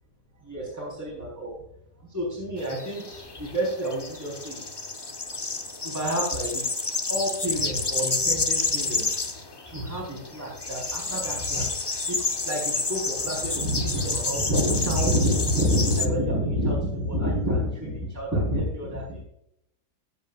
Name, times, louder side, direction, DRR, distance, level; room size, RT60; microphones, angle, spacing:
voice 1, 0.4-1.5 2.1-4.6 5.8-6.7 7.1-9.2 9.6-19.2, equal, 10° right, -4 dB, 4.1 m, -28 dB
sound 1, 2.6-16.1, left 3 dB, 30° left, 0.5 m, -29 dB
19.5 x 8.1 x 2.4 m, 0.76 s
omnidirectional pair, 1.8 m